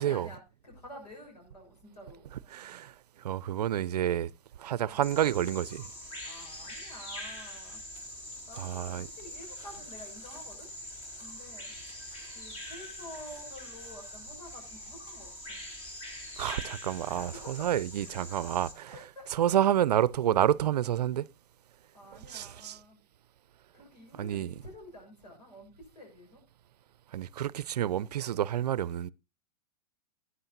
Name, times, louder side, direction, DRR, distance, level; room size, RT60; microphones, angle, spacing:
voice 1, 0.0-2.3 4.8-4.9 6.2-7.8 8.5-10.7 11.2-11.7 12.3-15.6 17.1-17.7 18.9-19.3 21.9-23.0 23.7-26.4, left 1 dB, 85° left, 6.5 m, -49 dB
voice 2, 2.5-2.9 3.2-4.3 4.6-5.9 8.6-9.1 16.4-19.0 19.3-21.3 22.3-22.8 24.2-24.6 27.1-29.1, right 11 dB, 80° right, 0.5 m, -29 dB
Bird vocalization bird call bird song, 5.0-18.7, left 1 dB, 30° left, 3.2 m, -44 dB
17.5 x 9.7 x 2.7 m
hypercardioid pair, 115°, 20 cm